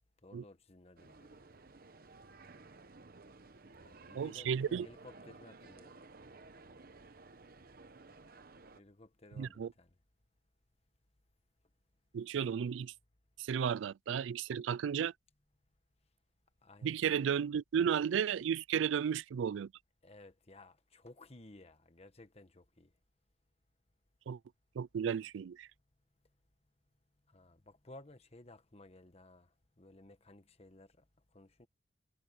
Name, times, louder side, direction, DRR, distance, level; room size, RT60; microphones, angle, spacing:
voice 1, 0.2-1.4 3.8-6.0 8.7-10.0 16.6-17.0 20.0-22.9 27.3-31.0 31.3-31.7, left 2 dB, 35° left, 1.3 m, -57 dB
sound 1, 1.0-8.8, right 3 dB, 50° right, 1.0 m, -56 dB
voice 2, 4.2-4.9 9.4-9.7 12.1-12.9 13.4-15.1 16.8-19.7 24.3-24.4 24.8-25.7, right 8 dB, 90° right, 0.3 m, -33 dB
head